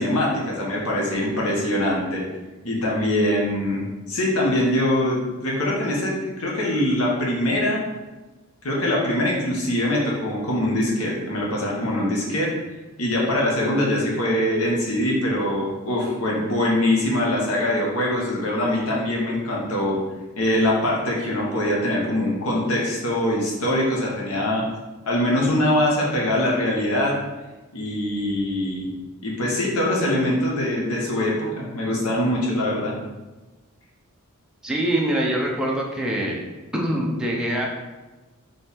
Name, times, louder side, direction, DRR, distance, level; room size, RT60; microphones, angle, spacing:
voice 1, 0.0-2.2 2.6-7.8 8.6-12.5 13.0-20.0 20.4-24.6 25.0-27.2 27.7-28.9 29.2-32.9, left 1 dB, 75° left, -3 dB, 1.0 m, -23 dB
voice 2, 34.6-36.4 36.7-37.7, right 1 dB, 5° right, -3 dB, 0.6 m, -24 dB
4.5 x 3.1 x 3.4 m, 1.1 s
head